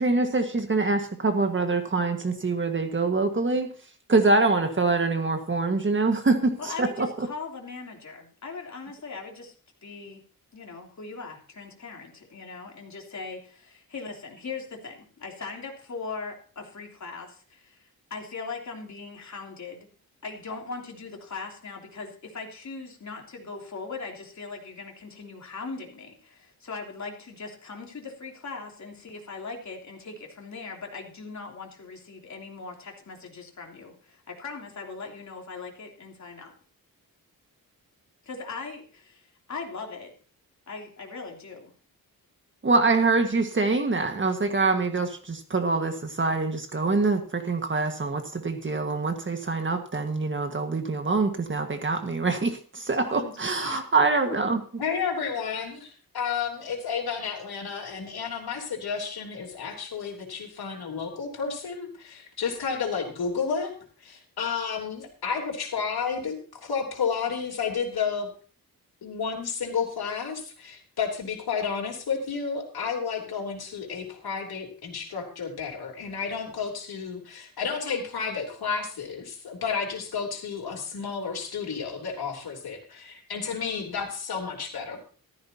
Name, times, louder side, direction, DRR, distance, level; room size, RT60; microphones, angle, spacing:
voice 1, 0.0-3.7 4.1-7.1 42.6-54.6, right 3 dB, 35° right, 6 dB, 1.7 m, -25 dB
voice 2, 6.6-9.5 9.8-10.2 10.5-19.9 20.2-36.5 38.2-40.1 40.7-41.7 52.8-53.9, left 4 dB, 50° left, 1 dB, 3.2 m, -39 dB
voice 3, 54.8-63.7 64.0-68.3 69.0-85.0, left 6 dB, 85° left, 1 dB, 3.5 m, -31 dB
15.0 x 14.0 x 2.8 m, 0.40 s
wide cardioid pair, 140°, 36 cm